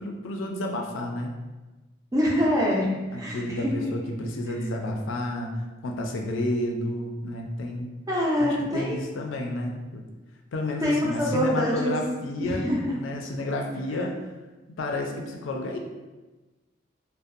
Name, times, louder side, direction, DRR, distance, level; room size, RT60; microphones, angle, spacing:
voice 1, 0.0-1.3 3.1-5.5 5.8-7.9 8.4-10.0 10.5-14.2 14.7-15.8, left 1 dB, 80° left, 2 dB, 0.4 m, -31 dB
voice 2, 2.1-3.7 8.1-9.0 10.8-12.0 12.4-12.8, equal, 20° right, -3 dB, 0.4 m, -25 dB
2.6 x 2.1 x 2.4 m, 1.2 s
head